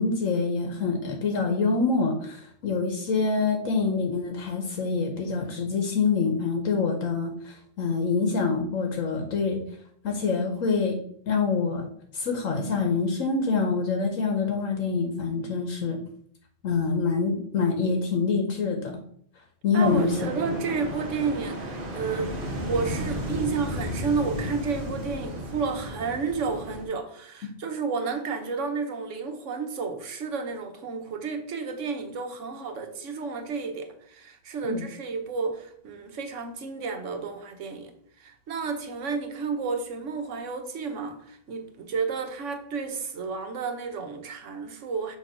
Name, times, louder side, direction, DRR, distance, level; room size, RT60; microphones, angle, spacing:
voice 1, 0.0-9.6 10.0-11.0 11.3-11.9 12.1-16.0 16.6-18.9 19.6-20.1 34.6-34.8, left 4 dB, 70° left, 1.2 m, -26 dB
voice 2, 19.7-22.3 22.7-37.9 38.2-45.2, right 5 dB, 65° right, 1.2 m, -31 dB
sound 1, 19.8-26.8, equal, 40° right, 1.3 m, -33 dB
6.2 x 3.0 x 5.7 m
omnidirectional pair, 1.4 m